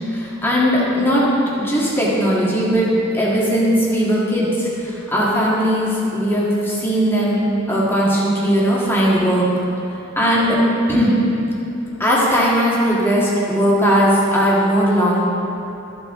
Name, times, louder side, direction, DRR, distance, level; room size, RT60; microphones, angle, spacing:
voice 1, 0.1-1.3 1.6-2.9 3.1-9.4 10.2-10.6 10.9-11.2 12.0-15.2, equal, 10° left, -7 dB, 1.9 m, -18 dB
14.0 x 6.2 x 3.8 m, 3.0 s
head